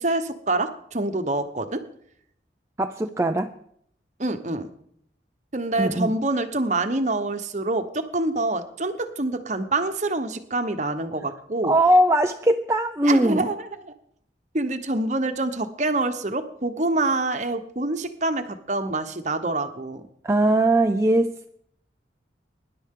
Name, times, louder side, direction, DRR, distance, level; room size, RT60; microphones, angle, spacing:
voice 1, 0.0-1.8 4.2-4.7 5.5-11.8 13.0-13.9 14.5-20.0, right 2 dB, 40° right, 9 dB, 1.0 m, -26 dB
voice 2, 2.8-3.5 5.8-6.1 11.6-13.5 20.2-21.5, right 1 dB, 15° right, 5 dB, 0.4 m, -20 dB
23.5 x 11.0 x 3.8 m, 0.69 s
head